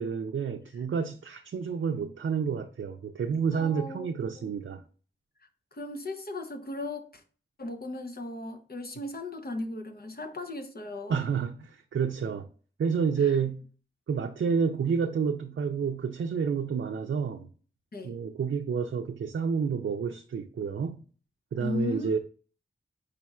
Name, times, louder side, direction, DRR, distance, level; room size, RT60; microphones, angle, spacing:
voice 1, 0.0-4.8 11.1-12.5 12.8-13.6 14.1-17.5 18.0-21.0 21.5-22.2, right 6 dB, 80° right, 0.4 m, -29 dB
voice 2, 3.5-4.5 5.7-7.2 7.6-11.2 13.2-13.3 17.9-18.2 21.6-22.2, left 2 dB, 50° left, 0.7 m, -36 dB
5.0 x 4.2 x 2.3 m
wide cardioid pair, 65°, 20 cm